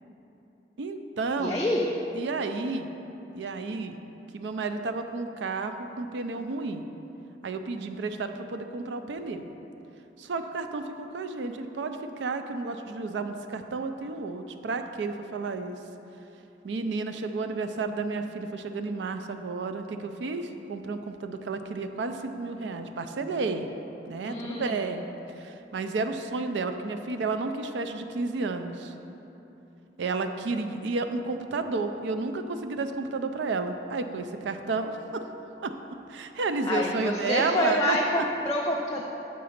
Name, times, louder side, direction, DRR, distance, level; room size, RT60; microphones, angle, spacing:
voice 1, 0.8-1.7 2.1-2.9 3.3-4.0 4.3-6.8 7.4-9.5 10.2-15.8 16.6-23.7 24.1-25.1 25.4-28.9 30.0-35.2 35.6-35.7 36.1-38.2, right 3 dB, 80° right, 8 dB, 0.4 m, -31 dB
voice 2, 1.4-1.9 24.2-24.8 36.7-39.0, left 1 dB, 20° left, -2 dB, 0.4 m, -27 dB
6.7 x 4.0 x 5.0 m, 2.9 s
head